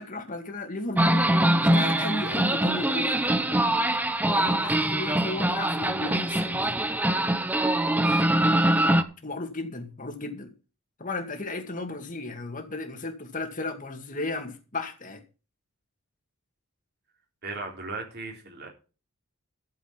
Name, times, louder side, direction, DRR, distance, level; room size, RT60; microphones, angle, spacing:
voice 1, 0.0-3.7 4.3-6.8 8.0-8.2 9.2-10.5 11.0-15.2, left 2 dB, 35° left, 2.2 m, -35 dB
Chau Van, 1.0-9.0, right 1 dB, 10° right, 0.6 m, -23 dB
voice 2, 17.4-18.7, right 3 dB, 50° right, 3.5 m, -36 dB
12.5 x 7.4 x 5.8 m
head